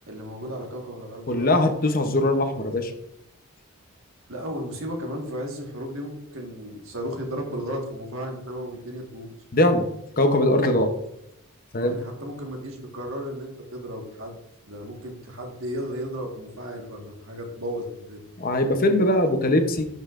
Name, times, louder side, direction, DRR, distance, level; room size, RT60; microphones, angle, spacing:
voice 1, 0.1-1.5 4.3-9.3 11.8-14.4 14.7-18.2, equal, 65° right, 2 dB, 1.5 m, -34 dB
voice 2, 1.3-2.9 9.5-9.9 10.2-10.9 11.7-12.0 18.4-19.9, left 1 dB, 40° left, 7 dB, 0.8 m, -21 dB
12.0 x 5.5 x 2.5 m, 0.77 s
head